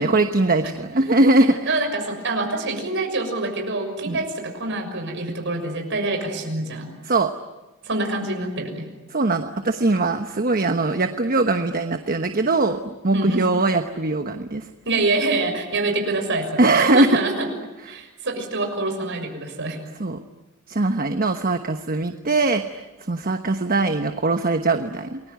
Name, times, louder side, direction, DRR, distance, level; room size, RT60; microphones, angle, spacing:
voice 1, 0.0-1.6 4.1-4.2 7.0-7.3 9.1-14.7 16.6-17.1 17.9-18.0 20.0-20.2 20.7-25.2, right 2 dB, 45° right, 7 dB, 1.1 m, -21 dB
voice 2, 1.4-6.9 7.8-8.9 13.1-13.5 14.8-17.5 17.8-19.8, right 2 dB, 60° right, 4 dB, 6.5 m, -26 dB
28.5 x 21.5 x 9.5 m, 1.1 s
head